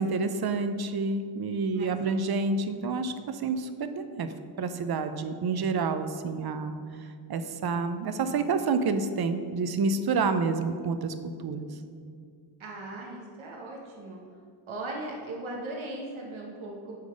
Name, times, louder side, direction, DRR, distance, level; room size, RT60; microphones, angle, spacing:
voice 1, 0.0-4.3 4.6-6.8 7.3-11.7, right 4 dB, 55° right, 9 dB, 0.6 m, -28 dB
voice 2, 12.6-14.2 14.7-17.0, right 2 dB, 80° right, -2 dB, 1.2 m, -38 dB
8.6 x 3.9 x 5.0 m, 2.2 s
wide cardioid pair, 95°, 47 cm